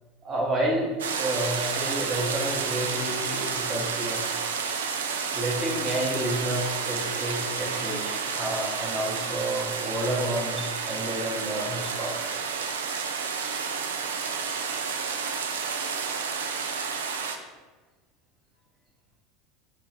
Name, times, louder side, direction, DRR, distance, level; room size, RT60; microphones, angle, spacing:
voice 1, 0.2-0.9 1.2-4.2 5.3-12.1, right 1 dB, 35° right, -2 dB, 1.0 m, -30 dB
sound 1, 1.0-17.4, right 5 dB, 75° right, 0.3 m, -30 dB
4.9 x 2.3 x 3.2 m, 1.3 s
figure-of-eight pair, 75°, 0 cm